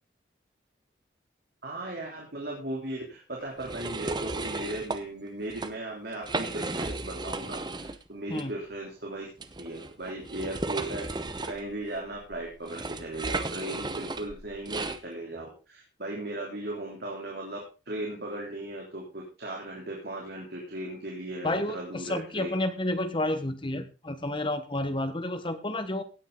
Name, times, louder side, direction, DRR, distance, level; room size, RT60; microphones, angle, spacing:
voice 1, 1.6-9.3 9.6-11.1 11.4-17.6 17.8-22.5, right 1 dB, 60° right, -2 dB, 3.4 m, -37 dB
sound 1, 3.6-5.0 5.4-5.7 6.1-8.0 8.3-8.4 9.4-15.0, right 2 dB, 25° right, 0.9 m, -34 dB
voice 2, 21.4-26.0, left 1 dB, 30° left, 10 dB, 1.2 m, -30 dB
17.0 x 8.9 x 3.9 m, 0.31 s
head